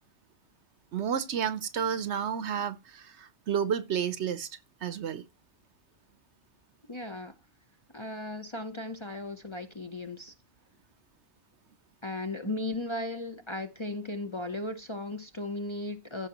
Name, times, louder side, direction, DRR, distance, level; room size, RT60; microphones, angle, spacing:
voice 1, 0.9-4.5 4.8-5.3, right 8 dB, 60° right, 0.9 m, -31 dB
voice 2, 6.9-7.3 7.9-10.3 12.0-16.3, left 2 dB, 25° left, 0.7 m, -36 dB
15.0 x 5.7 x 2.9 m
omnidirectional pair, 1.4 m